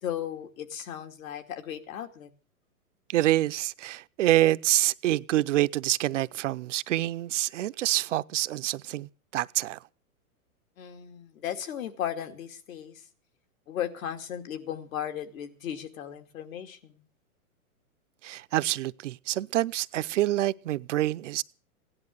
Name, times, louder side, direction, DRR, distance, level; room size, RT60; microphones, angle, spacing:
voice 1, 0.0-2.3 10.8-13.1 13.7-17.0, left 10 dB, 65° left, 2.6 m, -36 dB
voice 2, 3.1-9.8 18.2-21.4, right 15 dB, 55° right, 0.7 m, -26 dB
17.0 x 11.0 x 6.7 m
hypercardioid pair, 150°, 44 cm